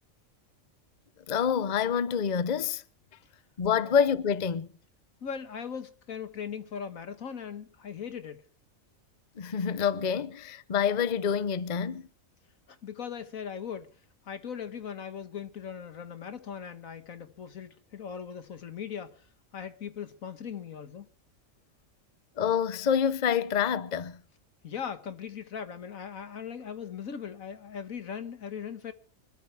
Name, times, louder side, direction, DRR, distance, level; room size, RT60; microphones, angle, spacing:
voice 1, 1.3-2.8 3.6-4.7 9.4-12.1 22.4-24.2, left 7 dB, 40° left, 0.8 m, -27 dB
voice 2, 5.2-8.4 12.7-13.9 14.3-21.1 24.6-28.9, left 7 dB, 85° left, 1.9 m, -39 dB
25.0 x 13.5 x 3.4 m
omnidirectional pair, 1.4 m